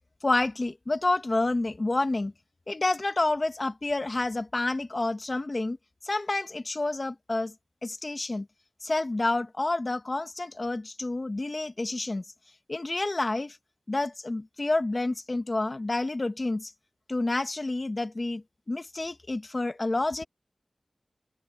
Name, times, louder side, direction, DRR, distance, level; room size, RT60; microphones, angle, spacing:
voice 1, 0.2-2.3 2.7-5.8 6.0-7.5 7.8-8.5 8.8-12.2 12.7-13.6 13.9-16.7 17.1-18.4 18.7-20.2, left 2 dB, 45° left, 1.9 m, -29 dB
wide cardioid pair, 75°, 0 cm